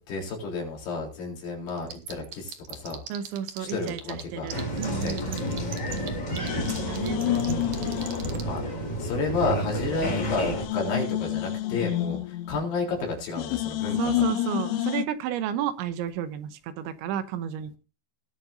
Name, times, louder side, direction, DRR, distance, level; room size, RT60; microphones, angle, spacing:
voice 1, 0.0-3.0 3.6-4.5 5.0-5.6 6.7-7.1 8.5-8.6 9.0-14.1, left 3 dB, 60° left, -1 dB, 5.7 m, -31 dB
sound 1, 1.7-4.2 4.5-8.4, right 12 dB, 65° right, 2.2 m, -37 dB
voice 2, 3.1-5.8 6.4-7.6 14.0-17.8, right 9 dB, 85° right, 10 dB, 3.3 m, -32 dB
Applause, 4.5-10.7, right 1 dB, 25° left, 4.9 m, -31 dB
sound 2, 5.4-6.1 6.4-9.0 9.4-9.5 9.9-13.0 13.4-15.1, left 14 dB, 85° left, 3.0 m, -30 dB
20.0 x 7.8 x 2.7 m, 0.34 s
omnidirectional pair, 5.3 m